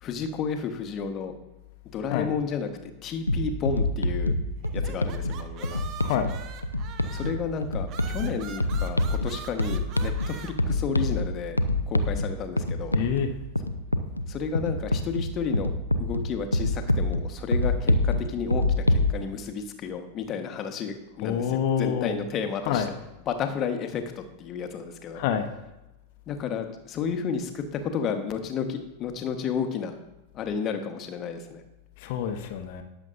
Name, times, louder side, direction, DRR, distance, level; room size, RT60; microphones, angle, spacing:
voice 1, 0.0-1.3 1.9-2.7 3.0-4.3 4.7-5.8 7.1-11.6 11.9-13.0 14.3-15.7 16.0-22.8 23.3-25.2 26.3-30.0 30.3-31.6, left 6 dB, 30° left, 7 dB, 1.4 m, -32 dB
sound 1, 3.3-19.1, left 1 dB, 85° left, 0.7 m, -27 dB
sound 2, 4.6-7.5 7.9-10.5, right 8 dB, 35° right, 1.1 m, -43 dB
voice 2, 12.9-13.3 21.2-22.2 22.6-23.0 25.1-25.5 32.0-32.8, left 8 dB, 50° left, 7 dB, 1.1 m, -27 dB
19.5 x 7.3 x 2.7 m, 0.99 s
figure-of-eight pair, 90°, 0 cm